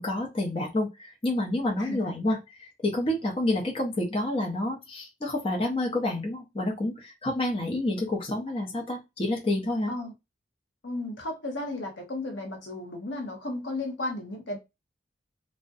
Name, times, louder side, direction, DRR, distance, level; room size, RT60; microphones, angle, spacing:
voice 1, 0.0-2.4 2.8-9.9, left 1 dB, 30° left, 0.6 m, -28 dB
voice 2, 1.8-2.1 9.9-10.1 10.8-14.6, left 2 dB, 75° left, 0.7 m, -34 dB
2.3 x 2.1 x 2.6 m
head